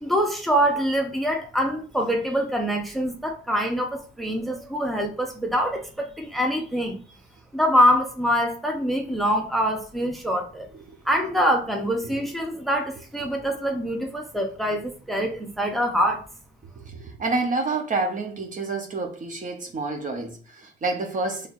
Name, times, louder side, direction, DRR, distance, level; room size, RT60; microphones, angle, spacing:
voice 1, 0.0-7.0 7.5-10.7 11.0-16.2, equal, ahead, 0.8 m, -24 dB
voice 2, 16.8-21.5, right 3 dB, 40° right, 0.8 m, -28 dB
4.3 x 3.2 x 2.5 m
cardioid pair, 90°, 20 cm